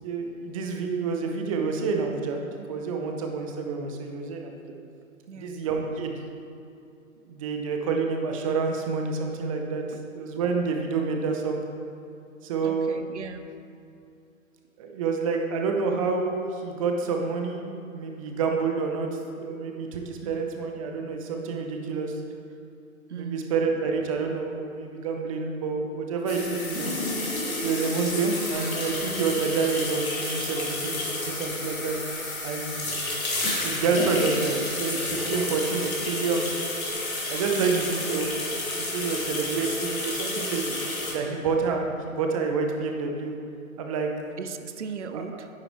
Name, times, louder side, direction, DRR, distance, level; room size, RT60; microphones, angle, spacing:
voice 1, 0.0-4.7 5.3-6.2 7.2-9.8 10.1-11.6 12.4-13.2 14.8-19.1 19.3-22.1 23.2-26.9 27.6-32.8 33.6-36.5 37.3-40.8 41.1-43.4 43.8-44.1 45.1-45.4, right 4 dB, 25° right, 3 dB, 0.8 m, -28 dB
voice 2, 12.6-13.5 20.2-20.4 23.1-23.5 37.5-37.8 44.4-45.5, right 6 dB, 55° right, 9 dB, 0.7 m, -37 dB
sound 1, 26.3-41.1, left 2 dB, 80° left, 2.4 m, -30 dB
9.8 x 9.7 x 3.2 m, 2.6 s
figure-of-eight pair, 130°, 42 cm